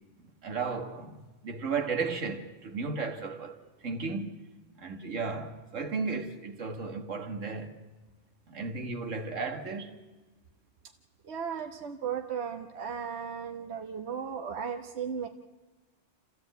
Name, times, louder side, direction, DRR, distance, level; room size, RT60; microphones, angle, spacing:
voice 1, 0.2-1.2 1.4-4.5 4.8-7.8 8.5-10.1, right 4 dB, 80° right, 2.0 m, -34 dB
voice 2, 11.2-15.3, right 7 dB, 60° right, 1.3 m, -36 dB
28.5 x 14.5 x 8.2 m
omnidirectional pair, 1.3 m